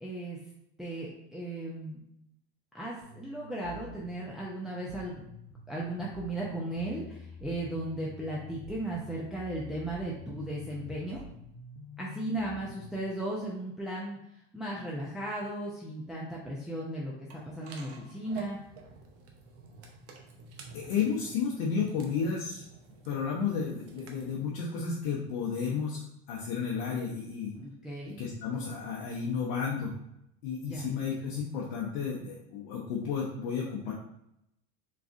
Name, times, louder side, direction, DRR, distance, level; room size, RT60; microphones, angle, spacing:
voice 1, 0.0-0.4 0.8-2.0 2.7-5.2 5.7-11.2 12.0-14.2 14.5-18.6 27.6-28.2 30.7-30.9, right 1 dB, ahead, -6 dB, 0.6 m, -36 dB
sound 1, 3.0-13.0, left 2 dB, 40° left, 0.8 m, -49 dB
sound 2, 17.3-24.4, right 4 dB, 55° right, 0.8 m, -49 dB
voice 2, 20.7-22.6 23.0-26.0 26.3-27.5 28.2-29.9 30.4-33.9, left 6 dB, 70° left, -3 dB, 0.7 m, -32 dB
3.5 x 3.2 x 2.5 m, 0.80 s
hypercardioid pair, 90°, 29 cm